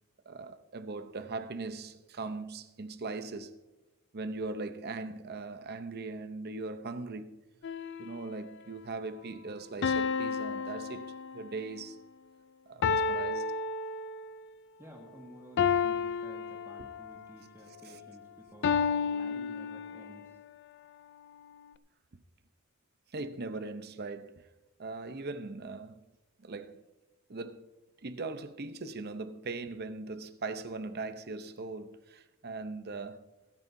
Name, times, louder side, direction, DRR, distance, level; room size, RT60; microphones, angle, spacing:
voice 1, 0.3-3.5 4.1-7.4 8.0-12.0 12.7-13.5 23.1-24.5 24.8-26.0 26.4-26.8 27.3-27.7 28.0-33.3, right 3 dB, 45° right, 0.7 m, -40 dB
sound 1, 7.6-8.5 9.8-11.7 12.8-14.4 15.6-17.2 18.6-20.3, left 5 dB, 55° left, 0.4 m, -31 dB
voice 2, 14.8-20.4, equal, 10° right, 1.7 m, -52 dB
26.0 x 9.0 x 2.7 m
head